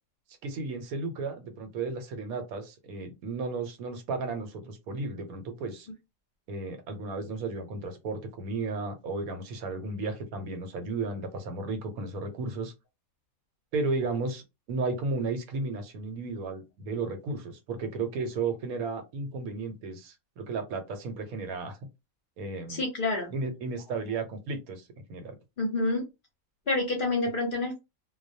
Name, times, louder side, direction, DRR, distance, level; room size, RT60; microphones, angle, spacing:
voice 1, 0.4-5.9 6.5-12.7 13.7-14.4 14.7-21.8 22.4-22.8 23.3-25.3, right 3 dB, 85° right, 1.1 m, -34 dB
voice 2, 22.7-23.3 25.6-26.1 26.7-27.8, left 2 dB, 50° left, 0.7 m, -28 dB
2.2 x 2.2 x 2.6 m
omnidirectional pair, 1.5 m